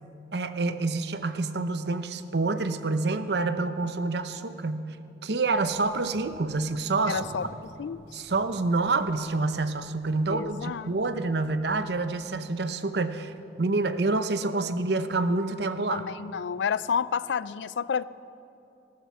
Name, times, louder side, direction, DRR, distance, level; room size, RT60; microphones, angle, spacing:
voice 1, 0.3-4.9 5.2-7.2 8.1-13.3 13.6-16.0, right 3 dB, 65° right, 11 dB, 0.7 m, -27 dB
sound 1, 5.6-12.2, equal, 85° right, 3.6 m, -52 dB
voice 2, 7.1-7.5 7.8-8.0 10.3-10.9 15.9-18.0, left 6 dB, 75° left, 18 dB, 0.4 m, -30 dB
13.5 x 12.5 x 7.3 m, 2.8 s
head